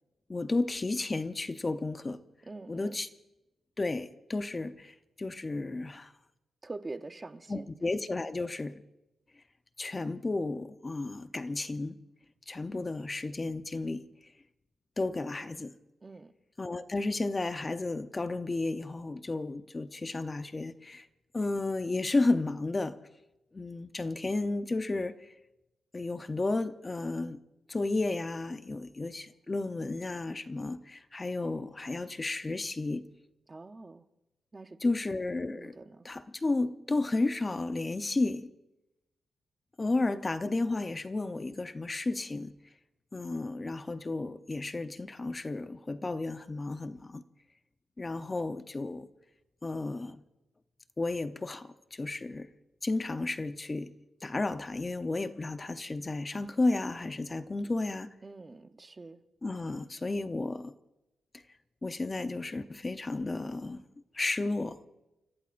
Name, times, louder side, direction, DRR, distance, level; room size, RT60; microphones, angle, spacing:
voice 1, 0.3-2.2 2.7-3.1 3.8-6.1 7.5-8.8 9.8-12.0 12.5-14.0 15.0-15.7 16.6-21.1 21.3-23.0 23.5-25.3 25.9-27.4 27.7-33.0 34.8-35.8 36.0-38.5 39.8-42.5 43.1-47.2 48.0-49.1 49.6-50.2 51.0-52.5 52.8-53.9 54.2-58.1 59.4-60.7 61.8-63.8 64.1-64.8, left 2 dB, 25° left, 0.7 m, -32 dB
voice 2, 2.5-3.0 6.6-7.7 16.0-16.3 33.5-34.0 34.5-35.0 35.6-36.1 58.2-59.2, right 3 dB, 25° right, 0.7 m, -44 dB
29.5 x 15.5 x 2.5 m
cardioid pair, 120°, 0 cm